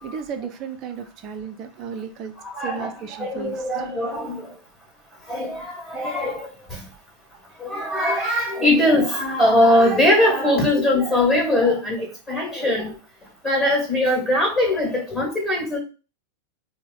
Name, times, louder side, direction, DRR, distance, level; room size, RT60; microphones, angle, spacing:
voice 1, 0.0-2.3 2.6-3.6, right 6 dB, 35° right, 0.6 m, -34 dB
voice 2, 2.5-2.9 3.2-4.4 5.3-6.5 7.6-12.0 12.3-12.9 13.4-15.8, left 1 dB, 5° left, 1.9 m, -20 dB
4.0 x 2.1 x 3.9 m
figure-of-eight pair, 90°, 0 cm